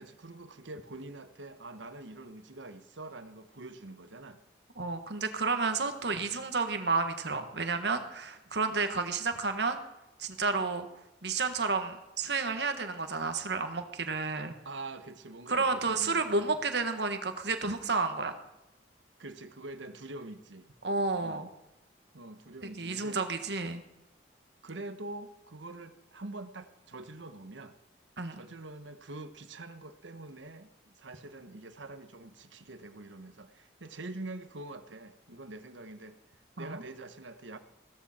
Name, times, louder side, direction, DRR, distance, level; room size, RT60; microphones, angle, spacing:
voice 1, 0.0-4.4 14.6-16.5 19.2-20.7 21.2-21.5 22.1-23.4 24.6-27.7 28.3-36.2 36.6-37.6, right 2 dB, 85° right, 9 dB, 1.2 m, -45 dB
voice 2, 4.8-9.8 10.2-10.9 11.2-14.5 15.5-18.4 20.8-21.5 22.8-23.8 28.2-28.4 36.6-36.8, right 4 dB, 65° right, 7 dB, 1.5 m, -31 dB
15.5 x 14.0 x 4.3 m, 0.95 s
head